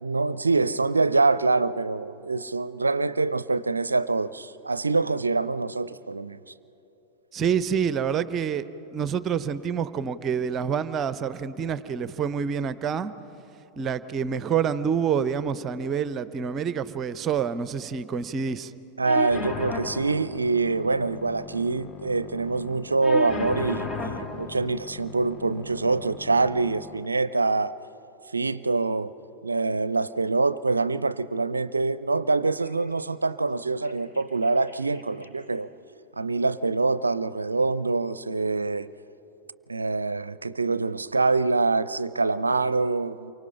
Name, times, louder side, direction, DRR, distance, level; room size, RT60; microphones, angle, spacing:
voice 1, 0.0-6.5 19.0-27.7 28.3-29.1 29.4-35.7 36.2-38.9 39.7-43.3, right 3 dB, 80° right, 0.4 m, -25 dB
voice 2, 7.3-13.1 13.8-18.7, right 7 dB, 30° right, 0.7 m, -27 dB
sound 1, 19.0-27.0, left 3 dB, 20° left, 1.1 m, -36 dB
sound 2, 32.6-35.5 37.5-37.8, left 1 dB, 60° left, 6.3 m, -57 dB
28.0 x 24.5 x 5.6 m
figure-of-eight pair, 90°, 0 cm